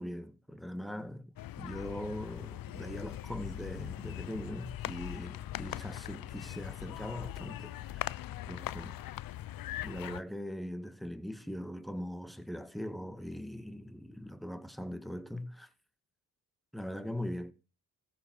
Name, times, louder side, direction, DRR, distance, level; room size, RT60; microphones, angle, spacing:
voice 1, 0.0-9.0 9.8-15.7 16.7-17.5, equal, ahead, 1.9 m, -41 dB
sound 1, 1.4-10.2, left 14 dB, 65° left, 0.7 m, -41 dB
14.5 x 7.7 x 7.6 m
cardioid pair, 65°, 36 cm